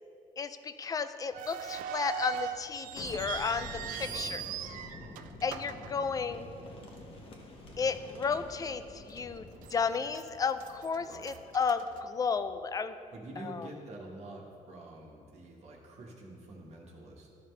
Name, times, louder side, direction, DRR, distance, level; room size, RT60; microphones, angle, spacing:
voice 1, 0.4-4.4 5.4-6.5 7.8-13.0 13.4-13.7, left 5 dB, 25° left, 11 dB, 0.3 m, -33 dB
sound 1, 1.3-6.7 7.0-7.1 7.8-8.0 8.5-8.6 9.2-9.8 10.1-12.6, right 9 dB, 85° right, 0.4 m, -41 dB
Boom, 2.9-12.5, left 2 dB, 45° left, 1.2 m, -49 dB
voice 2, 3.9-4.4 11.0-11.3 13.1-17.3, right 2 dB, 55° right, -1 dB, 1.3 m, -47 dB
13.0 x 5.5 x 3.2 m, 2.5 s
cardioid pair, 140°, 13 cm